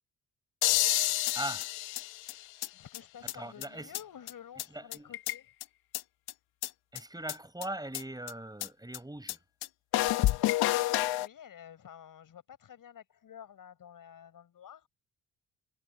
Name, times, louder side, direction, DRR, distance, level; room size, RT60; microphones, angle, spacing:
sound 1, 0.6-2.7 2.9-3.0 3.3-3.4 3.6-3.7 3.9-4.0 4.3-4.4 4.6-4.7 4.9-5.6 5.9-6.0 6.3-6.4 6.6-6.7 7.0-7.1 7.3-7.4 7.6-7.7 7.9-8.0 8.3-8.4 8.6-8.7 8.9-9.0 9.3-9.4 9.6-9.7 9.9-11.3, left 15 dB, 85° left, 1.6 m, -29 dB
voice 1, 1.3-1.7 3.4-3.9 4.7-5.1 6.9-9.4, right 1 dB, 10° right, 5.4 m, -40 dB
voice 2, 2.7-5.5 11.2-14.9, left 9 dB, 60° left, 6.7 m, -51 dB
supercardioid pair, 65°, 37 cm